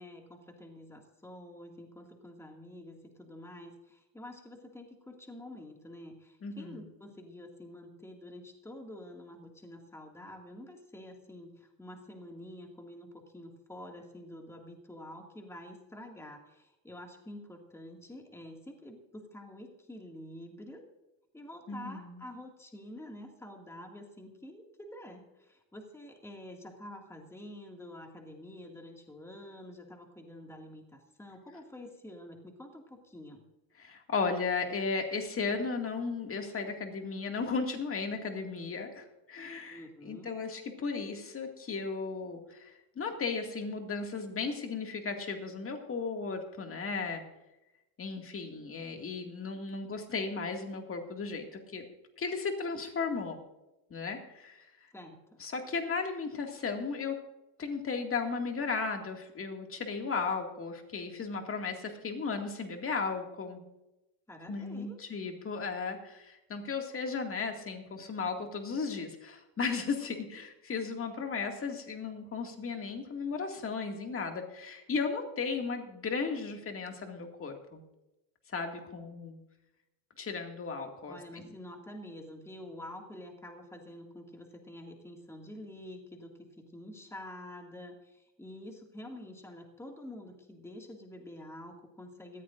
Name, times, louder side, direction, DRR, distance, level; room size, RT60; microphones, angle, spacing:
voice 1, 0.0-20.8 21.3-33.4 39.7-40.3 54.9-55.4 64.3-65.0 81.1-92.4, left 1 dB, 5° left, 2 dB, 2.2 m, -48 dB
voice 2, 6.4-6.8 21.7-22.2 33.8-47.2 48.0-51.8 52.2-53.4 53.9-54.7 55.4-57.2 57.6-63.6 64.5-77.8 78.5-79.4 80.2-81.4, left 4 dB, 30° left, 3 dB, 2.2 m, -35 dB
19.0 x 14.0 x 2.6 m, 0.95 s
cardioid pair, 130°, 46 cm